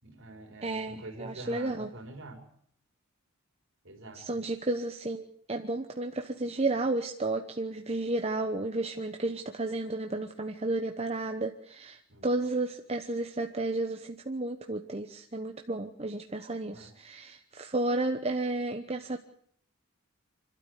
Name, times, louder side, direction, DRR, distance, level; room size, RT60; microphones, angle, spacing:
voice 1, 0.0-2.4 3.8-4.4 12.1-12.3 16.7-16.9, right 2 dB, 55° right, 3 dB, 4.7 m, -46 dB
voice 2, 0.6-1.9 4.1-19.2, right 2 dB, 30° right, 4 dB, 1.0 m, -32 dB
26.5 x 12.5 x 8.1 m, 0.68 s
head